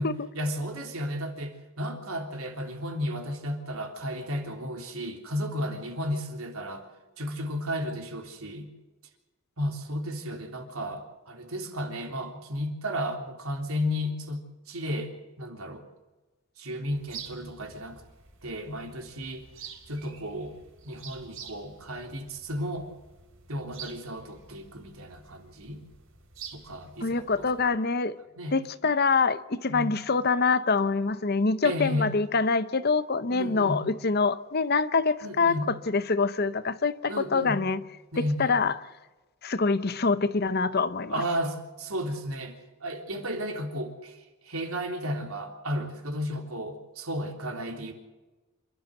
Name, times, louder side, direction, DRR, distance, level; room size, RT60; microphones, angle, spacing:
voice 1, 0.0-6.8 7.2-8.7 9.6-15.1 15.4-15.8 16.6-18.0 18.4-19.4 19.9-20.5 20.8-22.9 23.5-25.8 26.5-27.5 28.3-28.5 29.7-30.0 31.6-32.1 33.3-33.8 35.2-35.7 37.1-37.8 38.1-38.6 41.1-42.5 42.8-47.9, equal, 80° right, 3.5 m, -33 dB
sound 1, 16.9-27.7, right 7 dB, 65° right, 3.8 m, -48 dB
voice 2, 27.0-28.2 28.5-37.8 38.2-38.7 39.4-41.2, left 4 dB, 45° left, 0.8 m, -25 dB
27.5 x 12.5 x 7.9 m
head